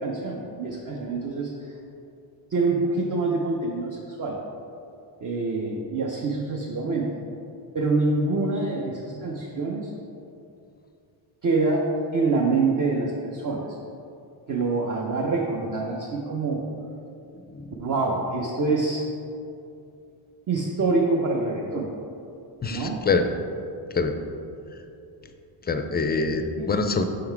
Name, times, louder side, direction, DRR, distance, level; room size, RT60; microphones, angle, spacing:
voice 1, 0.0-1.7 2.5-4.4 5.2-7.1 7.7-9.9 11.4-11.9 12.1-13.6 14.5-16.6 17.8-19.0 20.5-21.9 22.7-23.0 26.3-26.7, right 3 dB, 40° right, -2 dB, 0.6 m, -26 dB
voice 2, 22.6-23.3 23.9-24.1 25.7-27.0, left 4 dB, 25° left, 7 dB, 0.3 m, -25 dB
5.4 x 3.9 x 4.5 m, 2.6 s
cardioid pair, 85°, 48 cm